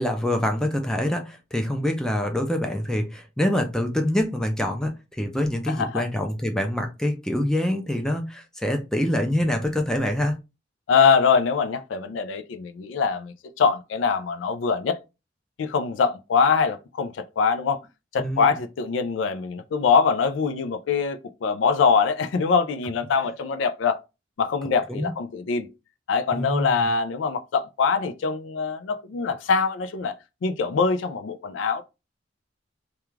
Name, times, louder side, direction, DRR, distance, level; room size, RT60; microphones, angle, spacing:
voice 1, 0.0-10.4 18.2-18.5 24.9-25.1 26.3-26.9, left 1 dB, 5° left, 0.4 m, -25 dB
voice 2, 5.7-6.0 10.9-15.0 15.6-17.8 18.1-24.0 24.4-25.7 26.1-30.1 30.4-31.8, left 5 dB, 80° left, 0.3 m, -23 dB
2.3 x 2.2 x 3.0 m
head